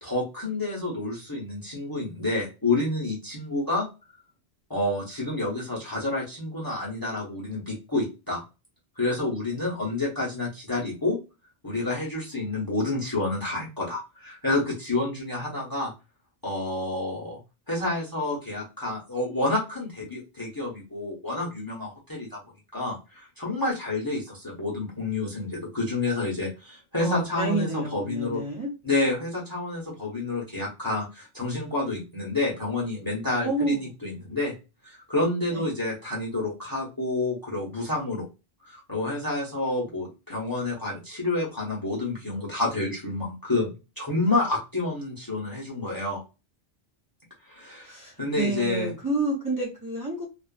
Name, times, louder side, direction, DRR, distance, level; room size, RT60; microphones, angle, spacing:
voice 1, 0.0-3.9 4.7-8.4 9.0-11.2 11.6-15.9 16.4-17.4 17.7-22.4 22.7-28.4 28.8-34.5 34.8-38.2 38.6-46.2 47.5-48.9, left 2 dB, 20° left, -4 dB, 0.9 m, -29 dB
voice 2, 27.0-28.7 33.4-33.8 35.5-35.7 47.9-50.3, right 2 dB, 20° right, -3 dB, 0.9 m, -29 dB
2.4 x 2.4 x 2.3 m, 0.28 s
omnidirectional pair, 1.1 m